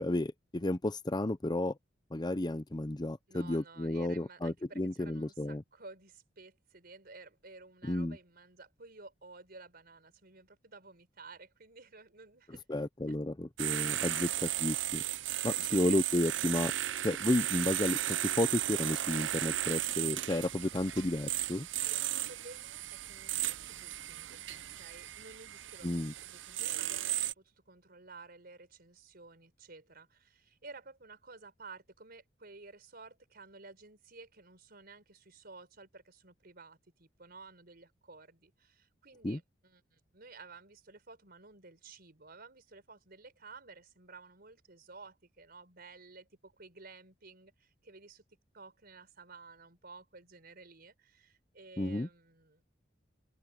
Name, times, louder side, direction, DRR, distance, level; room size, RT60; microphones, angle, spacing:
voice 1, 0.0-1.7 2.1-5.6 7.8-8.2 12.7-14.3 14.6-15.0 15.4-16.7 17.0-21.7 25.8-26.1 39.2-39.4 51.8-52.1, left 1 dB, 20° left, 0.7 m, -32 dB
voice 2, 3.3-12.6 13.1-13.2 15.5-16.0 21.8-24.4 24.7-48.2 48.5-52.6, right 3 dB, 55° right, 4.6 m, -54 dB
sound 1, 13.6-27.3, right 13 dB, 75° right, 0.6 m, -35 dB
open air
head